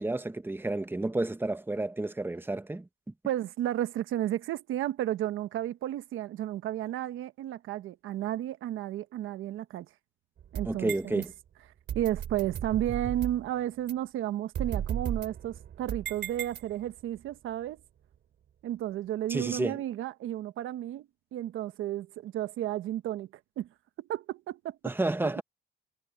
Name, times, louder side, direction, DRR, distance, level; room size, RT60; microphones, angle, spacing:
voice 1, 0.0-2.9 10.7-11.3 19.3-19.8 24.8-25.4, right 2 dB, 10° right, 1.0 m, -31 dB
voice 2, 3.2-9.9 10.5-11.2 11.9-17.8 18.6-23.3 23.6-23.7 24.0-24.9 25.2-25.3, right 12 dB, 85° right, 1.3 m, -33 dB
sound 1, 10.4-11.3 11.9-13.5 13.9-14.0 14.5-17.0, right 9 dB, 65° right, 3.2 m, -35 dB
cardioid pair, 90°, 20 cm